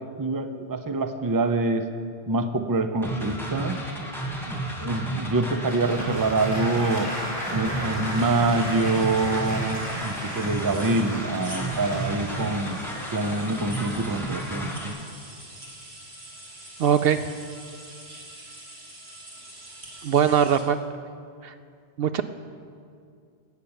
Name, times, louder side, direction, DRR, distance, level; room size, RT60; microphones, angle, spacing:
voice 1, 0.0-1.8 2.3-3.8 4.5-7.1 7.5-12.8 13.1-15.0, right 2 dB, 25° right, 8 dB, 0.6 m, -26 dB
sound 1, 3.0-14.9, right 1 dB, ahead, 2.0 m, -32 dB
Applause, 5.6-14.5, equal, 65° left, 4.6 m, -36 dB
sound 2, 8.0-20.6, right 1 dB, 45° right, 2.4 m, -45 dB
voice 2, 16.8-17.3 20.0-20.8 21.4-21.5 22.0-22.2, right 8 dB, 65° right, 11 dB, 0.7 m, -21 dB
16.5 x 6.8 x 8.8 m, 2.3 s
omnidirectional pair, 1.1 m